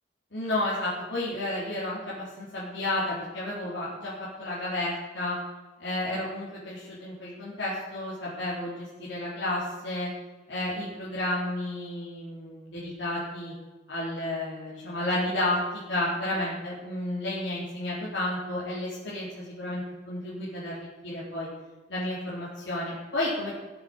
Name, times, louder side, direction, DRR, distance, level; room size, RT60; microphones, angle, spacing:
voice 1, 0.3-5.4 5.8-10.1 10.5-13.5 13.9-15.6 15.9-21.5 21.9-23.5, left 1 dB, 70° left, -7 dB, 4.1 m, -32 dB
18.0 x 7.6 x 8.0 m, 1.3 s
head